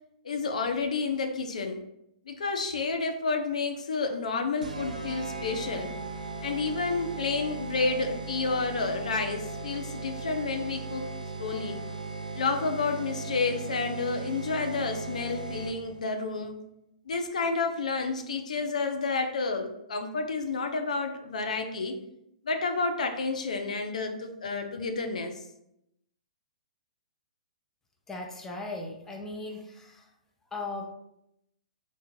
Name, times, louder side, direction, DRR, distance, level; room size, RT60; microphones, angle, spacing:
voice 1, 0.2-1.8 2.3-5.9 6.4-11.1 11.4-11.8 12.4-16.6 17.1-22.0 22.4-25.3, left 4 dB, 70° left, 6 dB, 0.5 m, -30 dB
sound 1, 4.6-16.0, right 3 dB, 85° right, 0.6 m, -38 dB
voice 2, 28.1-30.0 30.5-30.9, left 2 dB, 10° left, 1 dB, 0.7 m, -37 dB
3.7 x 2.4 x 4.3 m, 0.81 s
figure-of-eight pair, 120°, 4 cm